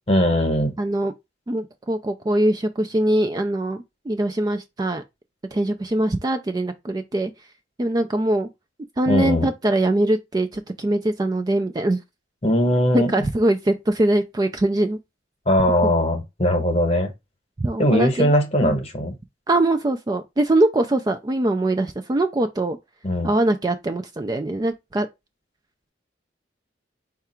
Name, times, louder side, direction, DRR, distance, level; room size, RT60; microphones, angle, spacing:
voice 1, 0.1-0.7 9.1-9.5 12.4-13.2 15.5-17.1 17.8-19.2 23.0-23.3, equal, 30° left, 1.0 m, -20 dB
voice 2, 0.8-1.1 1.5-5.0 5.5-7.3 7.8-8.5 9.0-12.0 12.9-15.0 15.8-15.9 17.6-18.3 18.6-18.8 19.5-22.8 23.2-25.1, right 1 dB, 20° right, 0.3 m, -22 dB
4.6 x 2.4 x 4.3 m
head